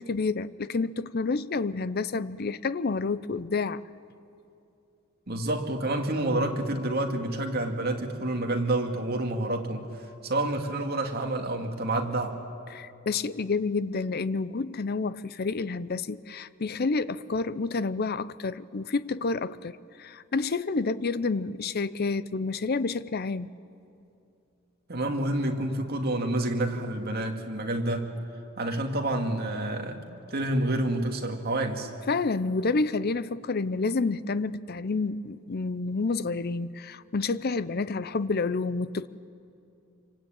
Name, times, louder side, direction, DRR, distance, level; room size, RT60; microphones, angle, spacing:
voice 1, 0.0-3.8 12.7-23.5 32.1-39.1, left 3 dB, 45° left, 0.6 m, -29 dB
voice 2, 5.3-9.9 10.2-12.4 24.9-28.1 28.6-30.0 30.3-31.9, right 1 dB, 50° right, 2.4 m, -28 dB
27.0 x 24.5 x 9.0 m
head